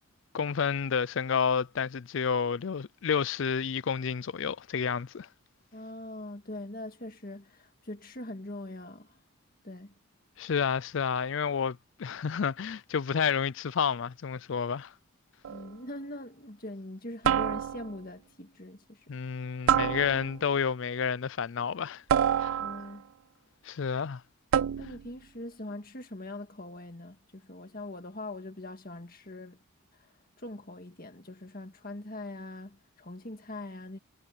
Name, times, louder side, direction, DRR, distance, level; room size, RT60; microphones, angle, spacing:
voice 1, 0.3-5.3 10.4-14.9 19.1-22.0 22.4-22.6 23.6-24.2, left 6 dB, 60° left, 0.4 m, -30 dB
voice 2, 5.7-9.2 9.6-9.9 15.5-19.1 22.6-23.1 24.8-29.6 29.9-34.0, left 1 dB, 40° left, 1.9 m, -42 dB
sound 1, 15.4-15.8 17.2-18.0 19.7-20.5 22.1-23.0 24.5-25.1, right 9 dB, 65° right, 0.3 m, -27 dB
head